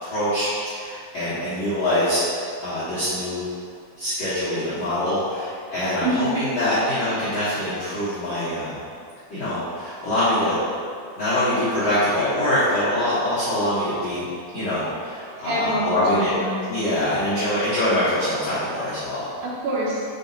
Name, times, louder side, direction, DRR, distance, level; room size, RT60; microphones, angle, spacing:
voice 1, 0.0-2.2 2.6-3.4 4.0-8.7 9.3-10.6 11.2-14.2 14.5-16.3 16.7-19.2, left 1 dB, 90° left, -14 dB, 1.4 m, -24 dB
voice 2, 6.0-6.4 15.4-16.7 19.4-20.0, right 1 dB, 75° right, -7 dB, 1.9 m, -26 dB
5.8 x 5.4 x 4.0 m, 2.3 s
omnidirectional pair, 5.7 m